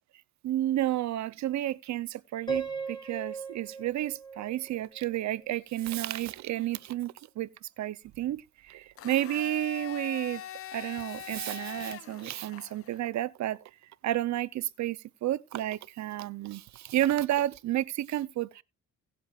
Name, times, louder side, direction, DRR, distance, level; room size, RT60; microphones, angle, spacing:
voice 1, 0.4-10.4 10.7-13.6 14.0-18.6, right 13 dB, 65° right, 0.6 m, -31 dB
Piano, 2.5-5.5, right 5 dB, 15° left, 3.6 m, -37 dB
Domestic sounds home sounds, 9.0-13.0, left 10 dB, 50° left, 0.6 m, -42 dB
18.0 x 7.6 x 2.4 m
cardioid pair, 90°, 30 cm